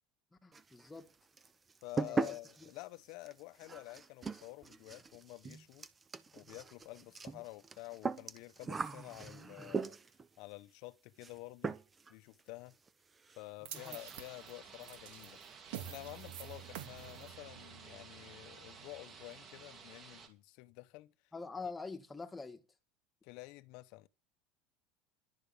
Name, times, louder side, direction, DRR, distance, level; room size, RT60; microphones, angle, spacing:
voice 1, 0.4-1.1 2.0-2.3 13.7-14.0 21.3-22.6, left 4 dB, 10° left, 1.6 m, -45 dB
sound 1, 0.5-1.1 1.4-10.3 11.2-11.4 11.6-12.1 12.4-12.5 12.9-13.0 13.2-13.4 13.7-14.2, right 4 dB, 20° right, 0.8 m, -40 dB
voice 2, 1.8-5.9 6.3-10.0 10.4-11.8 12.1-12.8 13.4-15.4 15.8-21.1 23.2-24.1, left 20 dB, 60° left, 0.8 m, -50 dB
sound 2, 13.7-20.3, right 5 dB, 35° right, 3.1 m, -54 dB
sound 3, 13.7-19.9, right 11 dB, 80° right, 2.6 m, -50 dB
11.5 x 6.8 x 8.5 m
supercardioid pair, 140°, 0 cm